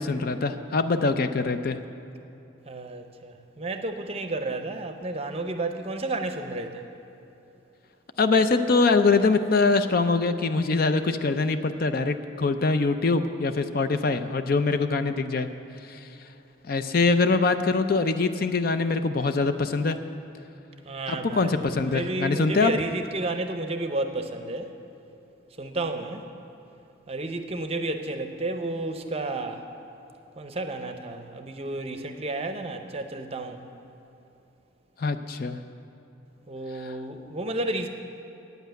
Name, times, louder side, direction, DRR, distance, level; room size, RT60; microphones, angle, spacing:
voice 1, 0.0-1.8 8.2-15.5 15.9-16.0 16.7-20.0 21.1-22.7 35.0-35.6 36.7-37.0, left 3 dB, 45° left, 9 dB, 0.4 m, -23 dB
voice 2, 2.7-6.9 20.8-24.7 25.6-26.2 27.1-29.6 30.4-33.6 36.5-37.9, right 2 dB, 30° right, 7 dB, 0.6 m, -32 dB
9.2 x 8.0 x 9.1 m, 2.9 s
head